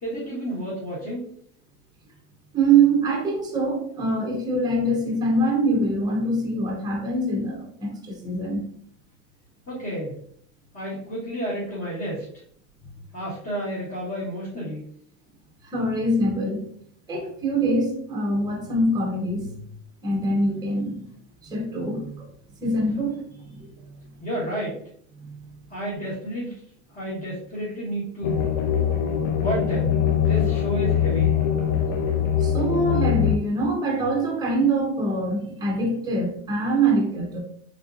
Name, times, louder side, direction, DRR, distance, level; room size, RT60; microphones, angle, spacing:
voice 1, 0.0-1.3 9.7-10.1 10.7-12.3 13.1-14.9 24.2-24.8 25.7-26.5 26.9-28.4 29.4-29.9 30.2-31.3, equal, 30° left, -9 dB, 1.4 m, -31 dB
voice 2, 2.5-8.7 15.6-16.7 17.1-19.5 20.0-21.0 21.4-22.3 22.6-23.7 25.2-25.4 32.4-37.4, right 2 dB, 10° right, 1 dB, 0.6 m, -24 dB
sound 1, 28.2-33.4, left 8 dB, 70° left, 0.6 m, -22 dB
3.7 x 2.6 x 2.5 m, 0.63 s
supercardioid pair, 145°, 40 cm